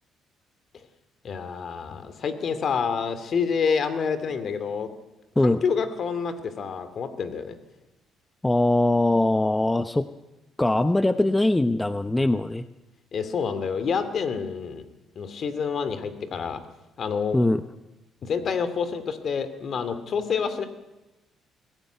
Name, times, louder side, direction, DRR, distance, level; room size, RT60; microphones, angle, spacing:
voice 1, 1.2-4.9 5.4-7.6 13.1-14.8 15.2-16.6 17.0-17.4 18.2-20.7, left 6 dB, 55° left, 11 dB, 2.4 m, -28 dB
voice 2, 8.4-10.1 10.6-12.7 17.3-17.6, left 1 dB, 10° left, 11 dB, 0.7 m, -21 dB
21.5 x 15.0 x 9.2 m, 1.1 s
cardioid pair, 95°, 0 cm